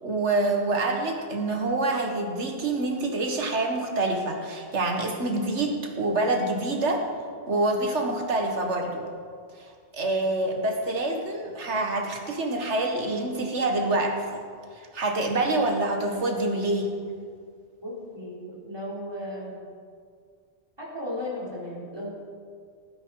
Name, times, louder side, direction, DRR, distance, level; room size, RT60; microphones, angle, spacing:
voice 1, 0.0-7.0 7.5-9.0 9.6-9.7 9.9-14.4 14.7-16.9, right 2 dB, 90° right, 2 dB, 2.0 m, -26 dB
voice 2, 17.8-19.6 20.8-22.1, left 1 dB, 20° right, -5 dB, 3.8 m, -35 dB
19.0 x 9.9 x 4.8 m, 2.1 s
omnidirectional pair, 1.1 m